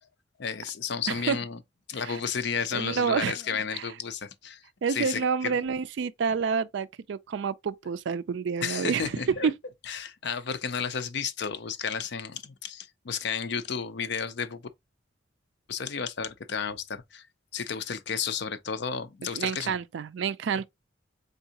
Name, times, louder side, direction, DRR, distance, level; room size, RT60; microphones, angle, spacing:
voice 1, 0.4-1.6 1.9-4.6 4.9-5.6 8.6-9.5 9.8-14.6 15.7-17.3 17.5-19.8, left 6 dB, 60° left, 0.5 m, -32 dB
voice 2, 1.1-1.4 2.0-2.2 2.7-3.3 3.7-3.9 4.8-9.1 9.4-9.5 19.3-20.6, right 6 dB, 65° right, 0.3 m, -28 dB
3.9 x 3.5 x 2.8 m
head